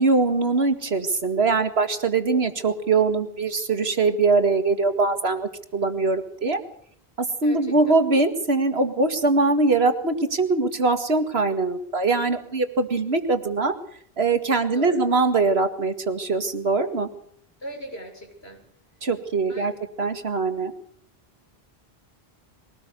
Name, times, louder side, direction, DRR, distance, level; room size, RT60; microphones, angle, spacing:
voice 1, 0.0-6.6 7.4-13.7 14.2-17.1 19.0-19.7 20.0-20.7, right 3 dB, 85° right, 8 dB, 2.3 m, -22 dB
voice 2, 7.4-8.0 14.5-15.1 17.6-18.6 19.5-19.7, right 1 dB, 80° left, 1 dB, 7.6 m, -39 dB
22.5 x 18.5 x 6.8 m, 0.64 s
omnidirectional pair, 1.0 m